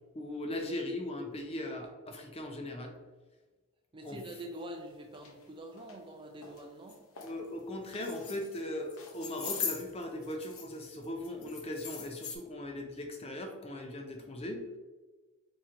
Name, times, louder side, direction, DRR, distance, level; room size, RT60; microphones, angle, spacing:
voice 1, 0.1-2.9 4.0-4.2 7.2-14.6, left 1 dB, 25° left, 3 dB, 0.5 m, -39 dB
voice 2, 3.9-7.0, right 1 dB, 20° right, 3 dB, 0.4 m, -45 dB
sound 1, 4.5-4.6 5.1-5.3 5.8-6.0 6.4-6.6 6.9-7.3 7.9-8.6 8.9-10.8 11.0-12.4, left 6 dB, 70° left, 0.8 m, -40 dB
4.5 x 2.9 x 3.7 m, 1.3 s
head